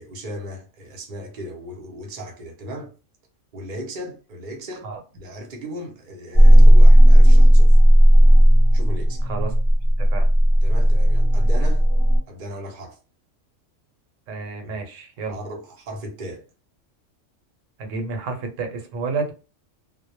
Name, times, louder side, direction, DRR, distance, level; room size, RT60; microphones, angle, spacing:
voice 1, 0.0-2.9 3.5-4.9 5.1-7.8 8.7-9.2 10.6-11.8 12.3-13.0 14.6-14.9 15.3-16.5, equal, 50° right, 0.7 m, -36 dB
sound 1, 6.3-12.2, equal, 30° left, 0.5 m, -12 dB
voice 2, 14.3-15.3 17.8-19.3, right 4 dB, 80° right, 0.9 m, -30 dB
2.1 x 2.0 x 2.9 m
omnidirectional pair, 1.3 m